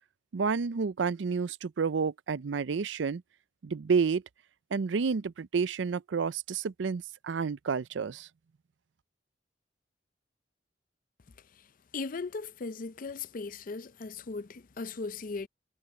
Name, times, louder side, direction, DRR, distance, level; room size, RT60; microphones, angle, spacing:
voice 1, 0.3-3.2 3.6-4.2 4.7-8.3, right 5 dB, 85° right, 0.5 m, -30 dB
voice 2, 11.9-15.5, left 4 dB, 50° left, 0.5 m, -38 dB
head